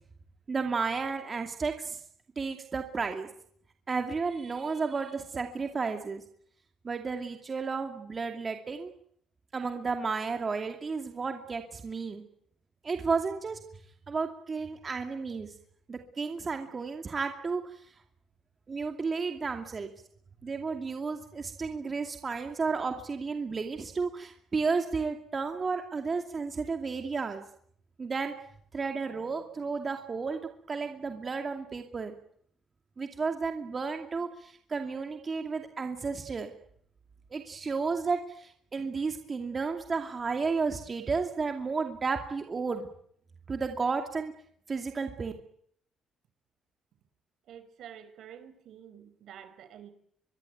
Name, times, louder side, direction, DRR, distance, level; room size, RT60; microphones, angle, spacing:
voice 1, 0.5-2.0 2.4-3.3 3.9-6.2 6.8-8.9 9.5-12.2 12.8-13.6 14.1-15.5 15.9-17.6 18.7-19.9 20.4-27.4 28.0-28.3 28.7-30.4 30.7-32.1 33.0-36.5 37.3-42.9 43.5-44.3 44.7-45.3, right 4 dB, 30° right, 5 dB, 2.5 m, -32 dB
voice 2, 47.5-49.9, right 9 dB, 65° right, 12 dB, 5.0 m, -49 dB
24.0 x 23.0 x 9.3 m, 0.66 s
cardioid pair, 135°, 0 cm